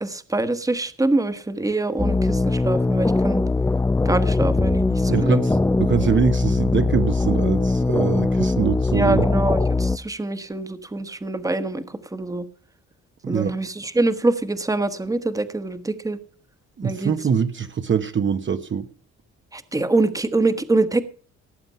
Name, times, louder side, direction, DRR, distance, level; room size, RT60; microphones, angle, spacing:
voice 1, 0.0-3.4 4.0-5.4 8.9-11.8 12.1-12.4 13.3-16.2 16.8-17.1 19.5-21.0, right 2 dB, 10° right, 11 dB, 1.3 m, -24 dB
sound 1, 2.0-10.0, left 3 dB, 10° left, 0.5 m, -21 dB
voice 2, 5.1-9.3 13.2-13.5 16.8-18.9, right 6 dB, 40° right, 7 dB, 1.1 m, -23 dB
18.0 x 7.8 x 5.5 m, 0.43 s
cardioid pair, 90°, 30 cm